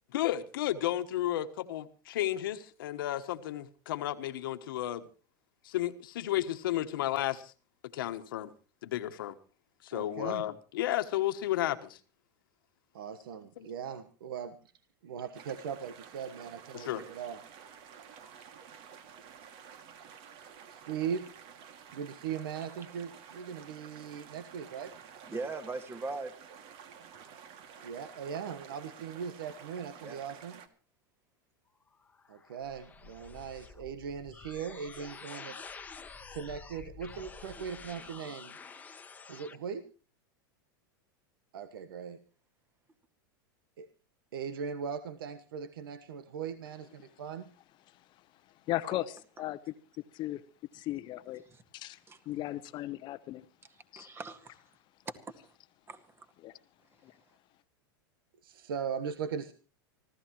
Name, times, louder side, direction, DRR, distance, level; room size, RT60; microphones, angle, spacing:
voice 1, 0.1-5.0 5.6-7.5 7.9-8.5 8.8-9.3 9.8-12.0 13.6-13.7 16.7-17.0, left 13 dB, 75° left, 1.4 m, -33 dB
voice 2, 9.9-10.5 12.9-14.5 15.0-17.4 20.7-21.3 21.9-24.9 27.8-30.5 32.3-35.6 36.3-38.5 39.3-39.8 41.5-42.2 43.8-43.9 44.3-47.5 58.4-59.5, right 7 dB, 80° right, 1.3 m, -39 dB
sound 1, 15.3-30.7, right 7 dB, 50° right, 2.4 m, -51 dB
voice 3, 25.3-26.3 30.0-30.2 51.5-51.6 52.1-52.2 54.0-54.6 55.3-55.5 55.9-56.3, right 3 dB, 20° right, 2.0 m, -40 dB
sound 2, 31.9-39.6, left 5 dB, 15° left, 1.3 m, -49 dB
voice 4, 48.7-49.6 50.1-50.4 50.7-51.4 51.7-52.0 52.3-53.5 56.4-56.5 57.0-57.1, left 15 dB, 40° left, 0.8 m, -36 dB
25.0 x 15.5 x 3.1 m
hypercardioid pair, 120°, 12 cm